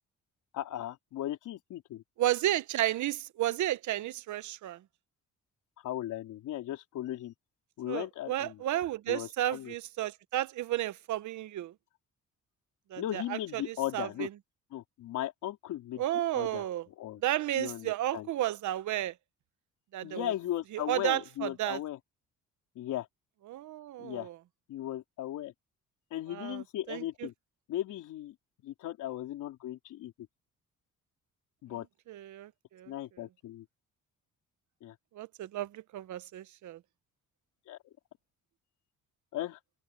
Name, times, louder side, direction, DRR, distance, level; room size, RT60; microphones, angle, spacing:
voice 1, 0.5-2.0 5.8-7.3 7.8-8.6 9.1-9.7 13.0-14.3 14.7-16.0 16.3-16.7 17.0-17.2 17.5-18.3 20.0-22.0 22.8-23.1 24.0-24.3 24.7-25.5 26.1-27.3 27.7-28.3 28.6-30.1 31.6-31.9 32.9-33.7 34.8-34.9 37.7-37.8 39.3-39.6, left 13 dB, 85° left, 4.1 m, -37 dB
voice 2, 2.2-4.8 7.9-11.7 12.9-14.3 16.0-16.8 17.2-19.1 19.9-20.3 20.7-21.8 23.5-24.4 26.3-27.0 32.1-32.9 35.1-36.8, right 13 dB, 70° right, 1.0 m, -33 dB
cardioid pair, 90°, 30 cm